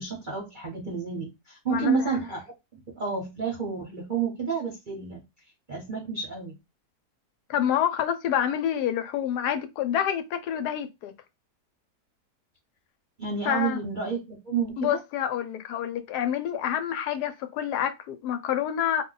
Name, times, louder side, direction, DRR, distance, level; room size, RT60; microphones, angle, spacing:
voice 1, 0.0-2.5 2.9-5.2 5.7-6.6 13.2-15.0, right 5 dB, 45° right, 0.7 m, -30 dB
voice 2, 1.7-2.1 7.5-11.1 13.5-13.8 14.8-19.0, left 10 dB, 85° left, 1.2 m, -28 dB
2.6 x 2.2 x 3.8 m
omnidirectional pair, 1.7 m